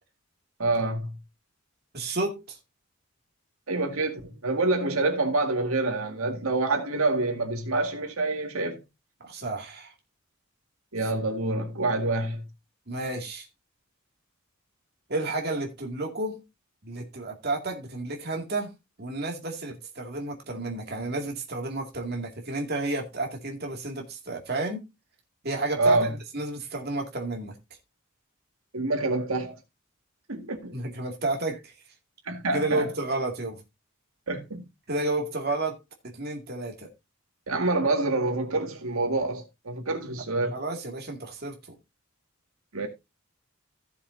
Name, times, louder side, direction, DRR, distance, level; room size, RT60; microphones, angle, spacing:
voice 1, 0.6-1.1 3.7-8.8 10.9-12.4 25.8-26.1 28.7-29.6 30.3-30.8 32.3-32.9 34.3-34.6 37.5-40.5 42.7-42.9, right 2 dB, 90° right, 2.0 m, -27 dB
voice 2, 1.9-2.6 9.2-9.9 12.9-13.5 15.1-16.4 16.8-18.7 19.0-24.8 25.4-27.6 30.7-31.7 32.5-33.6 34.9-35.8 36.1-36.9 40.5-41.8, right 2 dB, 50° right, 2.3 m, -31 dB
15.5 x 7.1 x 2.7 m
head